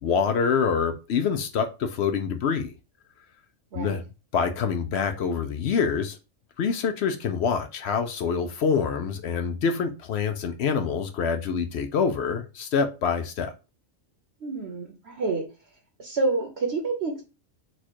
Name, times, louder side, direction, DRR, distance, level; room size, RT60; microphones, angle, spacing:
voice 1, 0.0-2.7 3.7-4.0 4.3-6.2 6.6-13.5, left 6 dB, 65° left, 0.7 m, -26 dB
voice 2, 14.4-15.4 16.0-17.2, right 3 dB, 60° right, 1.0 m, -28 dB
4.3 x 2.4 x 4.4 m
omnidirectional pair, 1.4 m